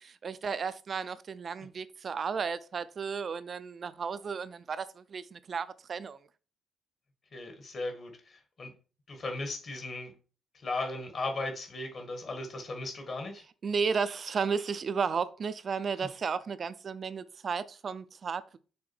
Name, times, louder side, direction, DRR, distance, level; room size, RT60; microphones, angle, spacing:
voice 1, 0.0-6.2 13.6-18.6, right 5 dB, 40° right, 0.4 m, -33 dB
voice 2, 7.3-8.7 9.1-10.1 10.5-13.4, left 2 dB, 45° left, 1.6 m, -37 dB
6.3 x 3.7 x 4.4 m
cardioid pair, 120°, 0 cm